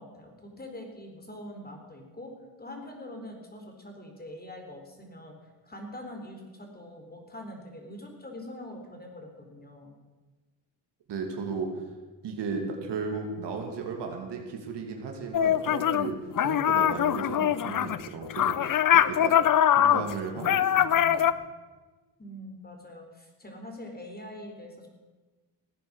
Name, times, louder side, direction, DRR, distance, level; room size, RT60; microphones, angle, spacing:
voice 1, 0.0-2.3 2.6-5.3 5.6-9.9 22.2-24.9, left 1 dB, 20° left, 2 dB, 4.0 m, -43 dB
voice 2, 11.1-11.7 12.2-19.3 19.7-21.3, right 4 dB, 70° right, 3 dB, 2.6 m, -35 dB
sound 1, 15.3-16.1 16.4-21.3, left 10 dB, 50° left, 0.7 m, -23 dB
17.0 x 9.2 x 6.4 m, 1.3 s
supercardioid pair, 65°, 43 cm